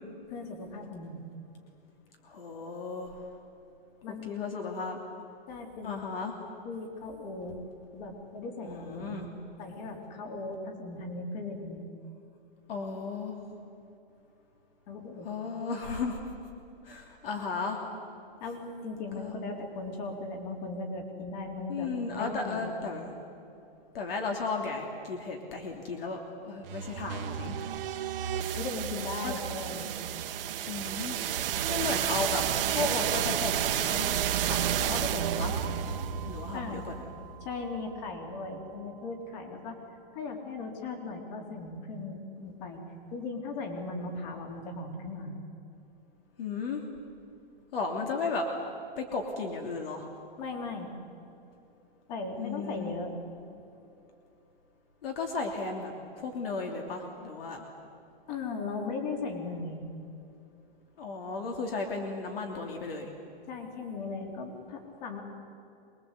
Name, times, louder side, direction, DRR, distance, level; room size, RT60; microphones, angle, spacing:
voice 1, 0.3-1.2 4.0-4.3 5.5-6.0 6.6-7.6 7.9-9.3 9.6-11.9 14.9-15.3 18.4-22.7 28.6-29.9 36.5-36.8 37.4-39.8 40.1-42.8 43.1-45.3 50.4-50.9 52.1-53.1 58.3-59.8 63.5-65.2, left 3 dB, 45° left, 3 dB, 3.9 m, -38 dB
voice 2, 2.2-3.2 4.1-5.0 5.8-6.3 8.6-9.3 12.7-13.4 15.2-16.2 16.8-17.8 19.2-19.3 21.7-23.1 23.9-27.6 29.2-29.3 30.7-31.2 31.7-35.6 36.3-36.9 46.4-46.8 47.7-48.5 49.0-50.1 52.4-52.9 55.0-57.7 61.0-63.1, left 4 dB, 70° left, 2 dB, 3.1 m, -35 dB
sound 1, 26.6-38.5, right 10 dB, 65° right, 1.3 m, -31 dB
25.0 x 21.5 x 8.4 m, 2.8 s
hypercardioid pair, 160°, 30 cm